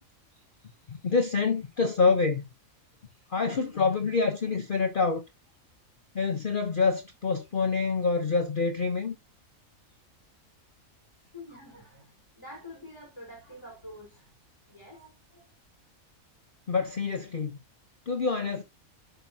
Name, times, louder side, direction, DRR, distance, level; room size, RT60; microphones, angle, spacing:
voice 1, 0.9-2.4 3.3-5.2 6.1-9.2 16.7-17.6 18.1-18.6, left 4 dB, 45° left, 0.9 m, -26 dB
voice 2, 11.2-14.4 14.7-15.6, left 1 dB, 20° left, 4.6 m, -47 dB
8.0 x 5.7 x 2.8 m
omnidirectional pair, 1.5 m